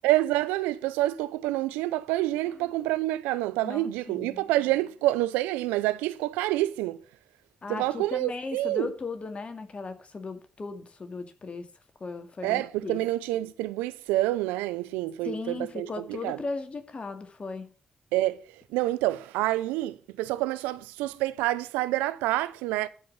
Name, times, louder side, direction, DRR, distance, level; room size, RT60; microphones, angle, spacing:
voice 1, 0.0-7.0 7.7-8.9 12.4-16.4 18.1-18.4 18.7-22.9, right 16 dB, 90° right, 0.6 m, -27 dB
voice 2, 3.6-4.4 7.6-11.7 12.0-13.0 15.2-17.7, left 4 dB, 45° left, 2.2 m, -37 dB
12.5 x 5.3 x 8.4 m
hypercardioid pair, 40°, 3 cm